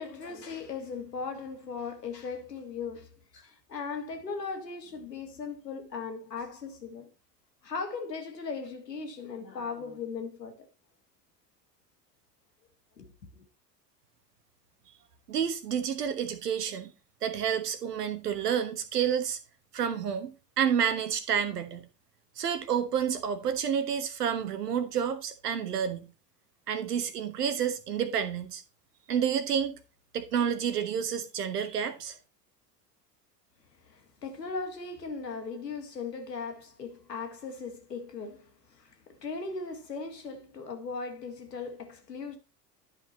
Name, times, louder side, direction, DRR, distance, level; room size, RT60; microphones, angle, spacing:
voice 1, 0.0-3.1 3.3-7.1 7.6-10.6 13.0-13.4 33.8-42.4, left 4 dB, 85° left, 1.6 m, -38 dB
voice 2, 15.3-16.9 17.2-19.4 19.7-21.9 22.4-26.1 26.7-28.6 29.1-29.8 30.1-32.2, right 8 dB, 75° right, 1.3 m, -29 dB
11.0 x 5.2 x 4.2 m
figure-of-eight pair, 80°, 48 cm